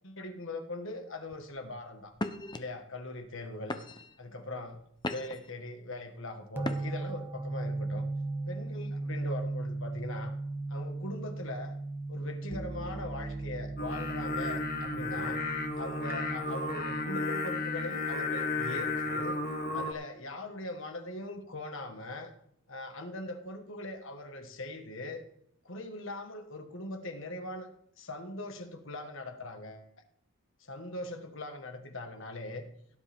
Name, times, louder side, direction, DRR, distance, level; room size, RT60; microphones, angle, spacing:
voice 1, 0.0-2.1 2.5-3.8 4.2-4.8 5.1-8.1 8.5-10.3 10.7-11.7 12.1-15.4 15.7-19.4 19.7-22.3 22.7-25.2 25.7-27.7 28.0-29.9 30.6-32.7, left 2 dB, 60° left, 6 dB, 1.7 m, -41 dB
sound 1, 1.3-1.6 2.1-2.6 3.2-3.4 3.7-4.2 4.7-5.5 6.6-7.1, left 2 dB, 20° left, 0.8 m, -37 dB
sound 2, 6.6-17.1, right 2 dB, 10° right, 1.0 m, -37 dB
Singing, 13.8-19.9, left 2 dB, 40° left, 1.7 m, -33 dB
17.0 x 10.5 x 3.7 m, 0.72 s
head